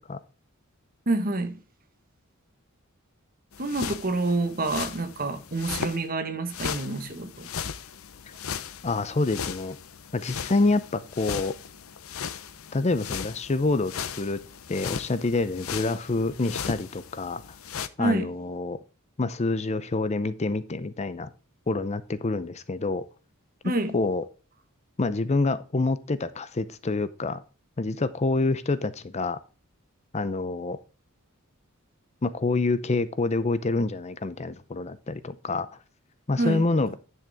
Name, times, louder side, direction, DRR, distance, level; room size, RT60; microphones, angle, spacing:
voice 1, 1.1-1.6 3.6-7.5 18.0-18.3 23.6-23.9 36.4-36.6, right 2 dB, 40° right, 1.2 m, -27 dB
sound 1, 3.5-6.0 6.5-17.9, left 7 dB, 75° left, 0.7 m, -37 dB
voice 2, 8.8-9.8 10.1-11.5 12.7-14.4 14.7-17.4 18.0-18.8 19.2-21.3 21.7-23.1 23.9-24.2 25.0-27.4 27.8-29.4 30.1-30.8 32.2-35.7 36.3-37.0, left 3 dB, 30° left, 0.6 m, -27 dB
10.5 x 6.4 x 3.4 m
head